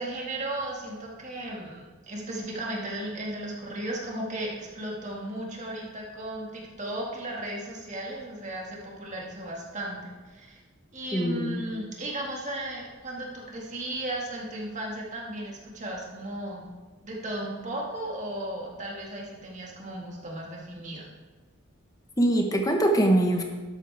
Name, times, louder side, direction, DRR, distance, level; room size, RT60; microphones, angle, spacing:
voice 1, 0.0-10.6 10.9-16.7 17.0-21.1, right 1 dB, 35° right, -2 dB, 2.0 m, -35 dB
voice 2, 11.1-11.6 22.2-23.4, right 1 dB, 15° left, 3 dB, 1.1 m, -23 dB
12.0 x 8.5 x 3.5 m, 1.3 s
head